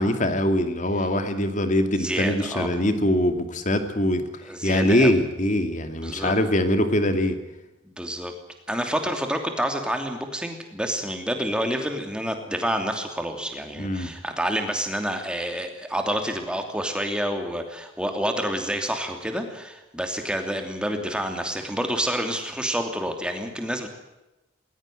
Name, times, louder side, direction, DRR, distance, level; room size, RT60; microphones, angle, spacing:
voice 1, 0.0-4.2 4.6-7.4 13.8-14.1, left 1 dB, 35° left, 8 dB, 2.4 m, -23 dB
voice 2, 2.0-2.8 4.4-5.2 5.9-6.3 7.8-8.3 8.7-23.9, equal, 5° right, 5 dB, 2.9 m, -28 dB
20.5 x 19.0 x 7.7 m, 0.99 s
head